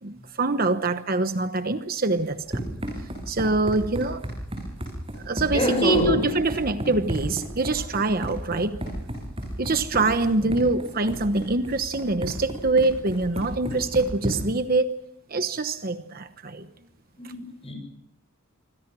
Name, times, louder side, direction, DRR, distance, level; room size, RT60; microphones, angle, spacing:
voice 1, 0.0-2.6 3.0-4.3 5.2-8.8 9.6-14.9 15.3-16.7 17.2-17.3, right 3 dB, 40° right, 1.1 m, -25 dB
Run, 2.2-14.6, right 1 dB, 25° right, 7.7 m, -34 dB
voice 2, 5.5-6.3 10.4-10.5 17.2-17.7, left 1 dB, 25° left, 7.6 m, -25 dB
27.5 x 24.5 x 6.2 m
head